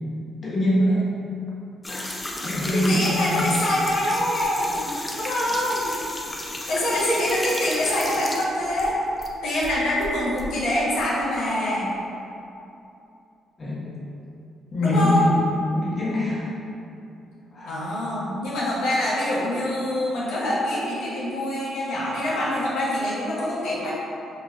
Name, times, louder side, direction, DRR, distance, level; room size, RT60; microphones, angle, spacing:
voice 1, 0.4-1.2 1.9-2.1 2.4-3.5 5.5-5.6 13.6-14.0 14.7-16.5 17.5-17.8, left 1 dB, 35° left, -8 dB, 1.2 m, -23 dB
sound 1, 1.8-9.3 9.6-10.5, left 1 dB, 15° left, 0.5 m, -33 dB
voice 2, 2.7-4.9 5.2-5.9 6.7-8.9 9.4-11.9 14.8-15.4 17.7-23.9, left 1 dB, 85° left, -8 dB, 0.9 m, -25 dB
5.2 x 3.0 x 2.4 m, 2.8 s
cardioid pair, 90°, 0 cm